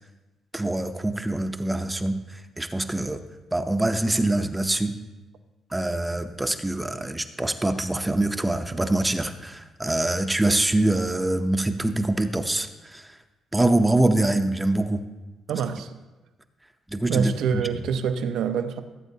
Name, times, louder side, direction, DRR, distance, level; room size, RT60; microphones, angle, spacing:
voice 1, 0.5-3.2 3.5-4.9 5.7-13.2 13.5-15.0 16.9-17.3, right 1 dB, 10° right, 0.6 m, -24 dB
voice 2, 15.5-16.0 17.1-18.8, right 6 dB, 80° right, 0.6 m, -26 dB
16.5 x 7.9 x 2.8 m
cardioid pair, 90°, 0 cm